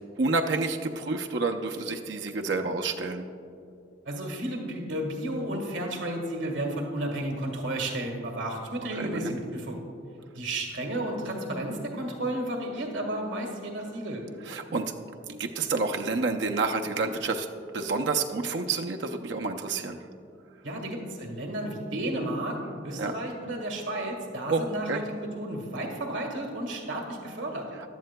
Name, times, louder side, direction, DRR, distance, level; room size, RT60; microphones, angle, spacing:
voice 1, 0.2-3.3 8.9-9.4 14.4-14.9 15.3-17.5 17.7-20.0 23.0-23.1 24.5-25.0, right 3 dB, 70° right, 4 dB, 0.5 m, -29 dB
voice 2, 4.0-9.8 10.3-14.2 20.6-27.6, right 1 dB, 90° right, 2 dB, 1.6 m, -32 dB
15.0 x 11.5 x 2.2 m, 2.4 s
head